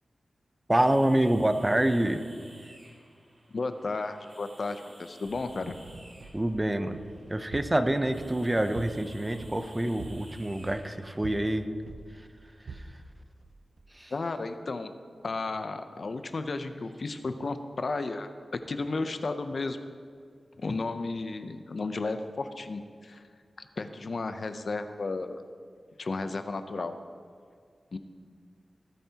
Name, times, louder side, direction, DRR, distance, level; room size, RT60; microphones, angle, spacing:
voice 1, 0.7-2.2 6.3-7.0 7.3-11.7 12.7-12.8 13.9-14.1, right 1 dB, 15° right, 9 dB, 0.6 m, -26 dB
sound 1, 0.7-11.5, right 1 dB, 35° right, 3.0 m, -55 dB
voice 2, 3.5-5.8 14.1-14.9 15.2-18.3 18.7-19.8 20.6-23.2 23.8-25.4 26.0-26.9 27.9-28.0, left 3 dB, 55° left, 9 dB, 0.6 m, -33 dB
sound 2, 5.2-13.9, right 3 dB, 80° right, 0.6 m, -46 dB
18.0 x 9.2 x 2.9 m, 2.1 s
wide cardioid pair, 95°, 0 cm